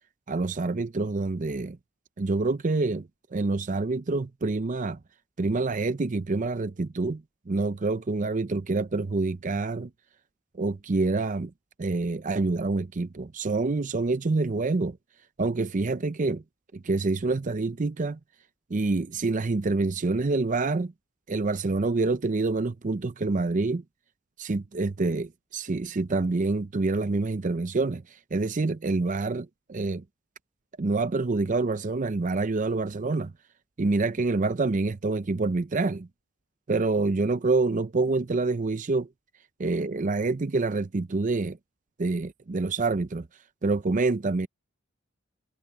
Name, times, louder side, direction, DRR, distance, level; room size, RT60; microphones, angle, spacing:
voice 1, 0.3-1.8 2.2-5.0 5.4-9.9 10.5-11.5 11.8-15.0 15.4-16.4 16.7-18.2 18.7-20.9 21.3-23.8 24.4-30.0 30.8-33.3 33.8-36.1 36.7-39.1 39.6-41.6 42.0-43.3 43.6-44.5, right 3 dB, 40° right, 0.5 m, -27 dB
head